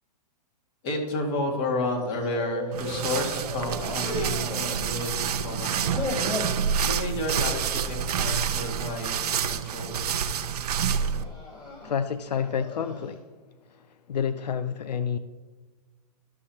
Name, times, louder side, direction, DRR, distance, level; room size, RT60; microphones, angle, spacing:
voice 1, 0.8-6.2 6.5-10.0, left 2 dB, 40° left, 2.1 m, -31 dB
sound 1, 1.9-3.0 3.3-5.2 5.5-6.6 7.1-7.4 7.8-8.0 8.8-9.2 9.7-10.1 10.9-13.1, left 2 dB, 20° left, 2.7 m, -37 dB
sound 2, 2.7-11.2, right 7 dB, 70° right, 0.6 m, -28 dB
voice 2, 11.8-13.2 13.7-15.2, left 7 dB, 85° left, 0.4 m, -30 dB
12.0 x 6.4 x 2.9 m
hypercardioid pair, 125°, 21 cm